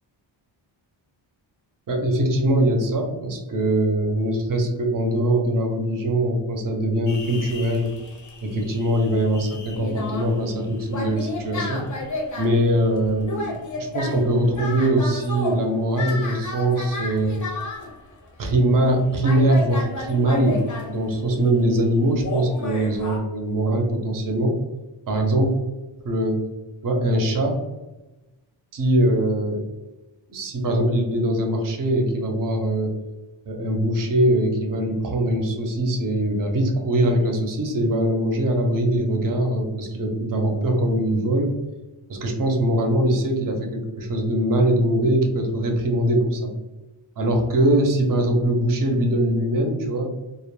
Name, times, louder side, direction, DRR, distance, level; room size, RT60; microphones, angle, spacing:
voice 1, 1.9-7.9 8.4-11.9 12.4-17.4 18.4-24.6 25.1-25.5 26.0-26.4 26.8-27.6 28.7-29.6 30.3-33.0 33.5-41.6 42.1-46.5 47.2-50.1, right 1 dB, 45° right, 3 dB, 0.5 m, -22 dB
sound 1, 7.1-18.0 18.5-18.6 18.9-19.0 19.2-21.5 22.2-23.2, left 2 dB, 40° left, 0.5 m, -33 dB
2.1 x 2.1 x 3.0 m, 1.1 s
wide cardioid pair, 145°, 49 cm